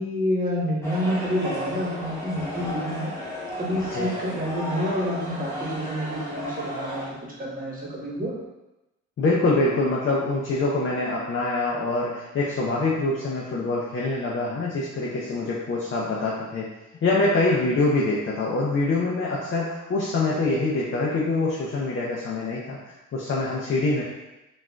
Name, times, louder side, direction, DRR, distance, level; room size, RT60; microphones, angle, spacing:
voice 1, 0.0-3.1 3.6-8.4, equal, 30° right, -4 dB, 1.1 m, -28 dB
sound 1, 0.8-7.1, equal, 10° left, 1.0 m, -34 dB
voice 2, 9.2-16.7 17.0-22.8 23.1-24.0, left 2 dB, 40° left, -4 dB, 0.6 m, -25 dB
4.0 x 2.5 x 2.3 m, 0.99 s
cardioid pair, 90°, 30 cm